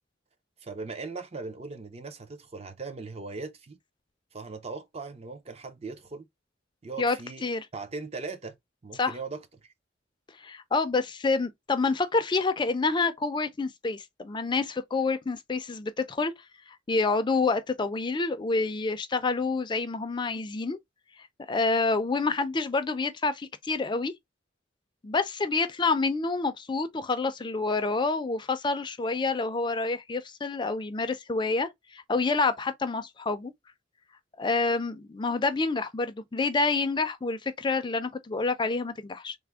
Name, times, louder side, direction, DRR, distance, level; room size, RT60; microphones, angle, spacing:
voice 1, 0.6-3.8 4.3-6.3 6.8-7.4 7.7-8.6 8.8-9.7, right 4 dB, 35° right, 0.5 m, -39 dB
voice 2, 10.4-16.3 16.9-20.8 21.5-24.1 25.0-33.5 34.4-39.4, left 3 dB, 25° left, 0.4 m, -28 dB
3.4 x 2.0 x 3.4 m
head